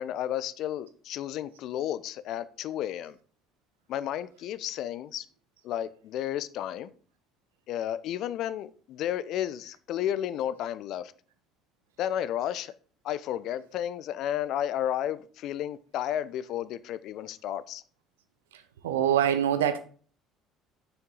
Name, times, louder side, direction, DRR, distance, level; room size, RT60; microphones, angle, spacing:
voice 1, 0.0-3.2 3.9-5.2 5.6-6.9 7.7-11.1 12.0-12.7 13.0-17.8, left 11 dB, 60° left, 0.5 m, -32 dB
voice 2, 18.5-19.8, right 10 dB, 85° right, 0.7 m, -25 dB
6.6 x 5.9 x 3.9 m
hypercardioid pair, 60°, 0 cm